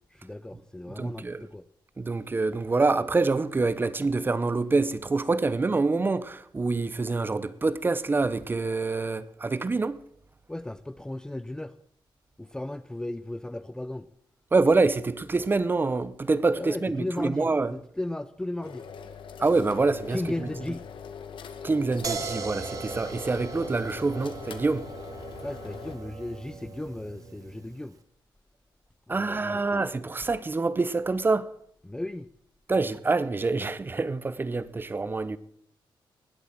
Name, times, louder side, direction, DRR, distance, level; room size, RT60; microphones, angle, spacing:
voice 1, 0.1-1.6 10.5-11.7 12.4-14.1 16.5-18.9 20.1-20.9 25.4-27.9 29.1-29.9 31.8-32.3, left 1 dB, 10° left, 0.5 m, -35 dB
voice 2, 1.0-1.5 2.0-10.0 14.5-17.7 19.4-20.5 21.6-24.9 29.1-31.5 32.7-35.4, right 3 dB, 25° right, 0.8 m, -26 dB
sound 1, 18.6-26.0, left 6 dB, 75° left, 1.8 m, -42 dB
sound 2, 22.0-27.9, right 4 dB, 40° right, 1.8 m, -38 dB
19.5 x 8.1 x 7.5 m
wide cardioid pair, 135°, 9 cm